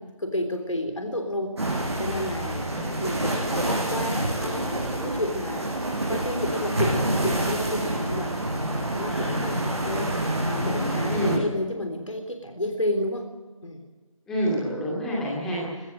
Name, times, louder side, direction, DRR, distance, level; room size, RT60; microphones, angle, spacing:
voice 1, 0.0-1.5 2.0-2.6 3.0-5.8 6.1-8.4 8.7-10.1 10.5-13.3 13.6-13.8, left 1 dB, 65° left, 5 dB, 3.5 m, -31 dB
sound 1, 1.6-11.4, right 1 dB, 50° right, 6.8 m, -27 dB
voice 2, 2.5-2.9 9.1-9.5 11.1-11.4 14.3-15.9, equal, 5° left, -5 dB, 2.5 m, -28 dB
22.5 x 18.0 x 7.7 m, 1.4 s
figure-of-eight pair, 165°, 18 cm